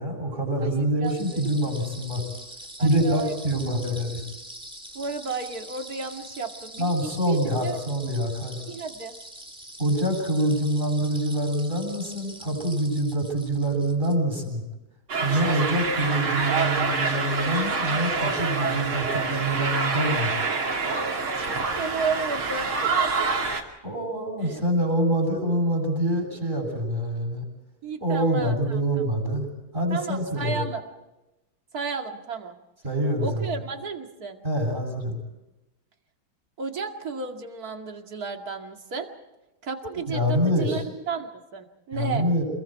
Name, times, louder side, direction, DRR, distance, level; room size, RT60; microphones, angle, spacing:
voice 1, 0.0-2.2 2.8-4.2 6.8-8.6 9.8-14.6 15.2-20.3 23.8-27.4 28.0-29.5 29.7-30.6 32.8-33.5 34.4-35.2 40.1-40.8 41.9-42.4, right 1 dB, 20° right, 2 dB, 7.9 m, -25 dB
voice 2, 0.6-1.4 2.8-3.4 4.9-7.8 8.7-9.2 21.8-23.0 27.8-28.6 29.9-30.8 31.7-32.6 33.2-34.4 36.6-39.1 39.6-42.2, right 5 dB, 45° right, 4 dB, 2.6 m, -33 dB
sound 1, 1.0-14.5, equal, 5° right, 2.2 m, -44 dB
sound 2, 15.1-23.6, right 4 dB, 85° right, 3.5 m, -26 dB
28.5 x 22.0 x 4.7 m, 0.99 s
omnidirectional pair, 2.3 m